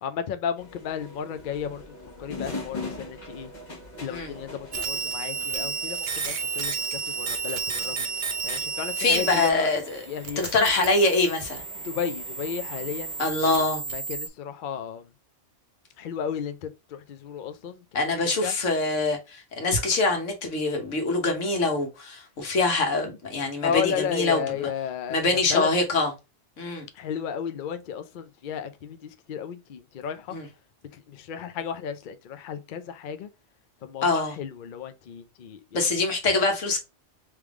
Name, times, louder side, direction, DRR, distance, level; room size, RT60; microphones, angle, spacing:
voice 1, 0.0-3.5 4.0-8.1 8.4-9.7 10.1-10.7 11.8-15.1 16.0-17.8 18.1-18.5 23.6-25.7 26.9-30.4 30.9-33.3 33.8-35.8, left 8 dB, 55° left, 0.6 m, -33 dB
sound 1, 0.6-13.3, left 2 dB, 40° left, 1.2 m, -43 dB
sound 2, 4.7-9.5 9.8-14.3, right 5 dB, 60° right, 1.0 m, -32 dB
voice 2, 9.0-10.0 10.5-11.6 13.2-13.8 17.9-24.7 25.1-26.1 26.6-26.9 30.3-30.5 34.0-34.3 35.7-36.8, left 3 dB, 85° left, 1.5 m, -24 dB
3.4 x 3.2 x 3.4 m
omnidirectional pair, 1.2 m